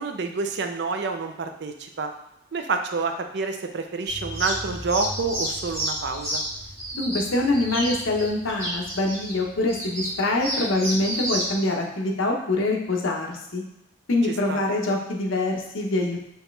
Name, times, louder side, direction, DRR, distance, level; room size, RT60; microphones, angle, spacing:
voice 1, 0.0-2.1 2.5-6.4 14.5-14.6, right 4 dB, 60° right, 6 dB, 0.4 m, -28 dB
sound 1, 4.1-11.5, equal, 15° right, 1.4 m, -31 dB
voice 2, 6.9-13.6 14.1-16.2, left 2 dB, 85° left, 1 dB, 0.8 m, -24 dB
4.8 x 3.1 x 3.2 m, 0.86 s
head